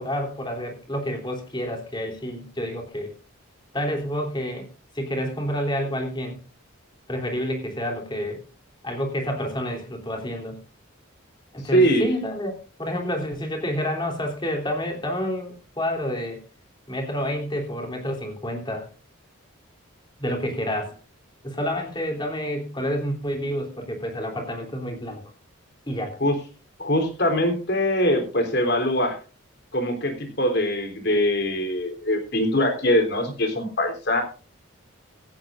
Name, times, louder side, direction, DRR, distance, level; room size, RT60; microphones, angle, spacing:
voice 1, 0.0-3.1 3.7-4.6 4.9-6.4 7.1-8.4 8.8-10.6 11.5-16.4 16.9-18.9 20.2-21.0 21.4-25.2 25.9-26.1, equal, 20° left, 2 dB, 3.2 m, -29 dB
voice 2, 11.7-12.0 26.2-26.4 26.8-29.2 29.7-34.2, equal, 50° left, 5 dB, 3.5 m, -22 dB
16.5 x 14.5 x 2.5 m, 0.34 s
head